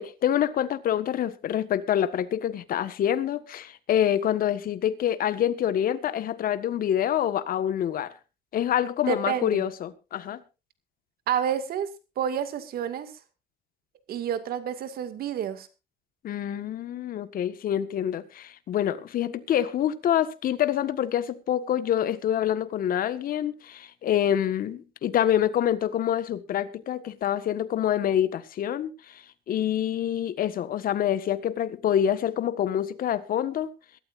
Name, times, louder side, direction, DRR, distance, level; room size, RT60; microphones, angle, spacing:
voice 1, 0.0-8.1 8.5-10.4 16.2-33.7, left 10 dB, 60° left, 1.6 m, -26 dB
voice 2, 9.1-9.6 11.3-11.9 12.2-13.1 14.1-15.7, right 8 dB, 65° right, 2.3 m, -29 dB
22.5 x 13.0 x 2.6 m
cardioid pair, 110°, 17 cm